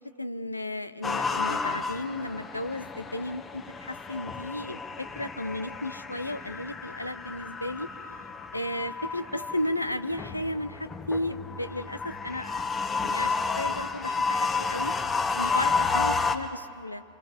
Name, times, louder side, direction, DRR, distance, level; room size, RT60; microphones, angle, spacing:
voice 1, 0.2-7.9 8.5-12.7 13.0-14.9 15.3-17.0, left 1 dB, 85° left, 12 dB, 0.7 m, -34 dB
sound 1, 1.0-16.4, left 4 dB, 20° left, 1.2 m, -31 dB
26.5 x 25.0 x 4.9 m, 2.4 s
figure-of-eight pair, 90°, 0 cm